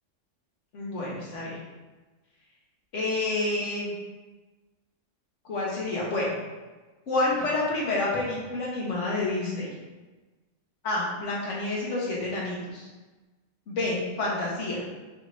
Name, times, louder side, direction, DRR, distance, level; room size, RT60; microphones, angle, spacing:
voice 1, 0.7-1.6 2.9-3.9 5.5-6.3 7.1-9.7 10.8-12.9 13.7-14.8, left 2 dB, 70° left, -4 dB, 1.3 m, -28 dB
4.9 x 2.5 x 3.2 m, 1.2 s
omnidirectional pair, 1.3 m